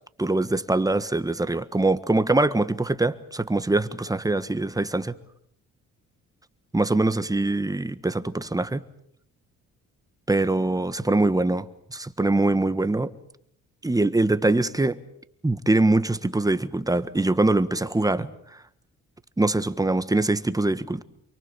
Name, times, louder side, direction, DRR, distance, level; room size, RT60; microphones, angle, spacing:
voice 1, 0.2-5.1 6.7-8.8 10.3-13.1 13.8-15.0 15.4-18.3 19.4-21.0, right 2 dB, 10° right, 1.5 m, -23 dB
28.5 x 23.5 x 7.2 m
cardioid pair, 90°, 30 cm